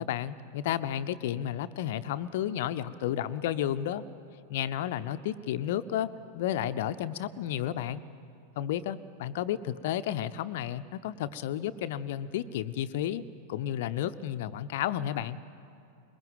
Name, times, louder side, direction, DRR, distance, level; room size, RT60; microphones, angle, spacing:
voice 1, 0.0-4.0 4.5-8.0 8.6-13.2 13.5-15.4, left 11 dB, 55° left, 12 dB, 0.8 m, -32 dB
22.5 x 21.0 x 9.0 m, 2.6 s
figure-of-eight pair, 90°, 0 cm